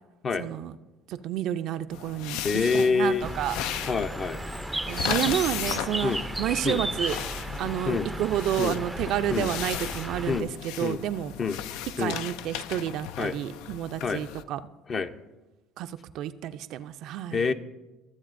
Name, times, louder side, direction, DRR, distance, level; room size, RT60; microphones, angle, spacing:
voice 1, 0.4-0.7 1.1-2.4 2.8-3.6 4.9-7.2 7.6-11.3 12.0-14.6 15.8-17.4, right 11 dB, 65° right, 10 dB, 0.4 m, -30 dB
sound 1, 1.9-14.4, left 11 dB, 75° left, 0.3 m, -36 dB
voice 2, 2.4-3.3 3.9-4.4 6.0-6.2 6.6-6.8 7.9-8.1 8.6-8.8 9.3-9.5 10.3-10.5 10.8-11.0 11.4-11.6 12.0-12.2 13.2-13.3 14.0-14.2 14.9-15.1 17.3-17.5, left 4 dB, 40° left, 8 dB, 0.7 m, -26 dB
Bird, 3.2-10.4, right 1 dB, 10° right, 0.4 m, -34 dB
19.0 x 7.3 x 2.5 m, 1.1 s
supercardioid pair, 75°, 0 cm